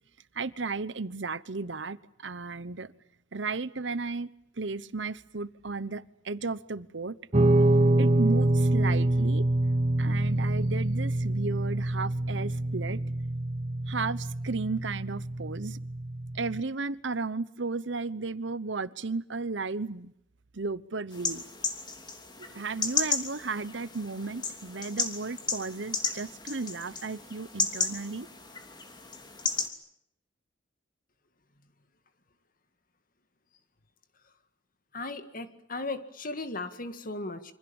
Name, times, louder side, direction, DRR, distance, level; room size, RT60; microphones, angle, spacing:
voice 1, 0.3-2.9 3.3-4.3 4.6-7.2 8.0-9.5 10.0-13.0 13.9-15.8 16.3-20.1 20.5-21.4 22.4-28.3, right 3 dB, 70° right, 16 dB, 1.0 m, -34 dB
Guitar, 7.3-16.6, right 1 dB, 35° right, 1.2 m, -26 dB
sound 1, 21.1-29.7, left 4 dB, 25° left, 3.0 m, -34 dB
voice 2, 34.9-37.5, left 2 dB, 45° left, 10 dB, 2.1 m, -36 dB
27.5 x 25.5 x 7.2 m, 0.74 s
head